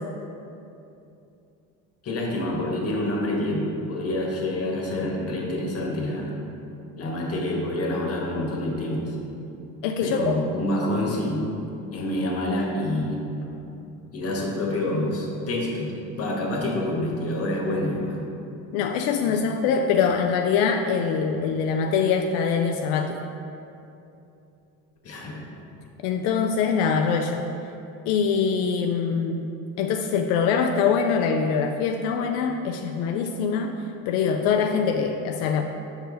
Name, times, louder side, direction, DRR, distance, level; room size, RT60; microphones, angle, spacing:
voice 1, 2.0-6.3 7.0-9.2 10.0-11.5 11.9-13.2 14.1-18.2 19.2-19.5 25.0-25.4, left 1 dB, 40° left, -1 dB, 1.5 m, -27 dB
voice 2, 9.8-10.3 18.7-23.2 26.0-27.4 28.1-29.5 29.8-33.8 34.1-35.6, left 6 dB, 80° left, 4 dB, 0.5 m, -23 dB
6.5 x 4.7 x 4.0 m, 2.7 s
supercardioid pair, 95°, 35 cm